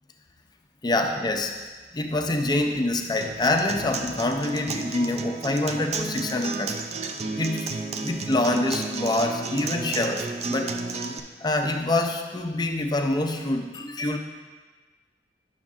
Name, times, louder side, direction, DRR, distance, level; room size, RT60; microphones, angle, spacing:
voice 1, 0.8-1.5 1.9-6.8 7.3-7.7 8.0-10.8 11.4-14.2, left 2 dB, 25° left, 4 dB, 0.4 m, -26 dB
Acoustic guitar, 3.2-11.2, right 3 dB, 35° right, 0.4 m, -32 dB
8.8 x 6.3 x 2.4 m, 1.3 s
head